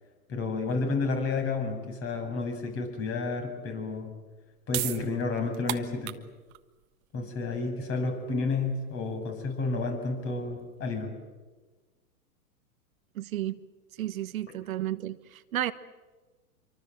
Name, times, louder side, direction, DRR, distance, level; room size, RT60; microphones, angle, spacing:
voice 1, 0.3-4.1 4.7-6.1 7.1-11.1, left 3 dB, 30° left, 5 dB, 7.2 m, -31 dB
sound 1, 4.3-11.0, right 17 dB, 50° right, 1.6 m, -39 dB
voice 2, 13.1-13.6 14.0-15.7, right 13 dB, 70° right, 12 dB, 1.3 m, -32 dB
26.5 x 24.5 x 7.7 m, 1.2 s
hypercardioid pair, 125°, 44 cm